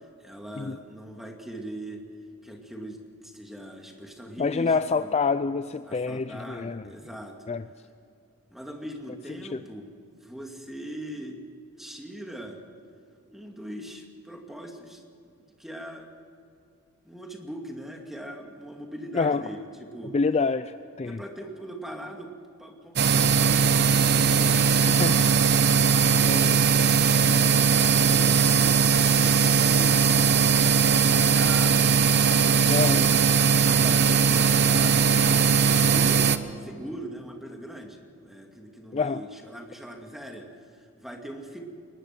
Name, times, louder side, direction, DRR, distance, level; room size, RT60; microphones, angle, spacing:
voice 1, 0.2-2.0 2.4-5.1 5.9-7.4 8.5-9.9 10.2-11.4 11.8-12.6 13.3-15.0 15.6-16.1 17.0-19.6 19.9-20.1 21.0-22.3 22.6-25.3 27.0-27.7 28.0-33.1 33.6-36.3 36.6-41.6, right 1 dB, ahead, 2 dB, 2.4 m, -41 dB
voice 2, 4.4-6.9 7.5-7.6 9.5-9.6 19.1-19.4 20.1-21.2 25.0-25.2 25.8-25.9 26.2-26.6 32.7-33.0 38.9-39.2, left 4 dB, 30° left, 12 dB, 0.4 m, -27 dB
sound 1, 23.0-36.4, right 6 dB, 50° right, 0.9 m, -20 dB
22.5 x 20.0 x 6.0 m, 2.5 s
head